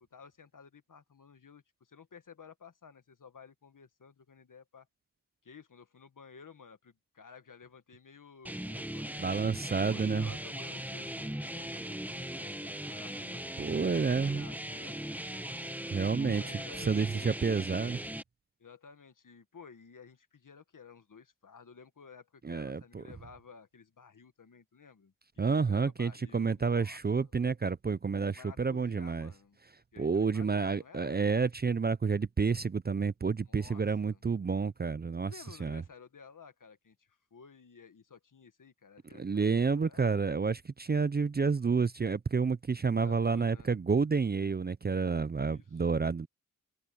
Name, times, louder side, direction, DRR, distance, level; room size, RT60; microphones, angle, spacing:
voice 1, 0.1-4.9 5.4-9.5 9.8-13.5 14.0-15.5 16.1-17.3 18.6-25.1 25.6-27.3 28.3-29.6 29.9-31.2 33.5-34.2 35.2-40.2 42.9-43.7 45.5-46.0, left 6 dB, 65° left, 1.6 m, -54 dB
sound 1, 8.4-18.2, right 1 dB, 5° right, 1.2 m, -39 dB
voice 2, 9.2-10.3 13.6-14.5 15.9-16.4 16.8-18.0 22.4-23.0 25.4-29.3 30.0-35.3 35.6-35.8 39.1-46.3, right 5 dB, 30° right, 0.4 m, -29 dB
wide cardioid pair, 80°, 34 cm